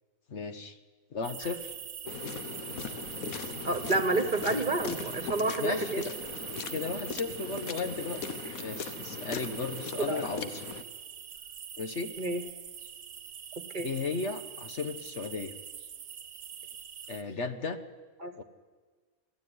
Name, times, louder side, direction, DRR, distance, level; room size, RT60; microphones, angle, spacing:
voice 1, 0.3-0.8 1.1-1.8 2.8-2.9 5.6-6.1 6.7-10.6 11.8-12.1 13.8-15.5 17.1-17.8 18.3-18.4, left 4 dB, 55° left, 10 dB, 1.4 m, -35 dB
sound 1, 1.2-17.2, right 8 dB, 85° right, 1.5 m, -43 dB
sound 2, 2.1-10.8, left 6 dB, 80° left, 1.6 m, -40 dB
voice 2, 3.6-6.1 10.1-10.3 12.2-12.4 13.7-13.9 18.2-18.3, right 2 dB, 35° right, 9 dB, 1.4 m, -29 dB
24.0 x 15.0 x 9.4 m, 1.4 s
omnidirectional pair, 1.5 m